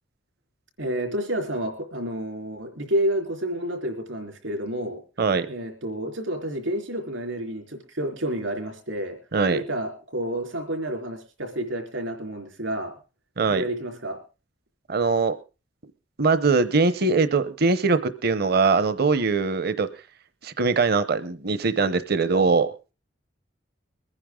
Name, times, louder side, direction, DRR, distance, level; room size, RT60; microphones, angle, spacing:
voice 1, 0.8-5.0 5.5-9.2 9.5-12.9 13.5-14.2, right 1 dB, 80° right, 4 dB, 4.0 m, -30 dB
voice 2, 9.3-9.6 13.4-13.6 14.9-15.3 16.2-19.9 20.4-22.7, right 4 dB, 55° right, 13 dB, 0.8 m, -22 dB
22.5 x 10.0 x 3.7 m, 0.32 s
head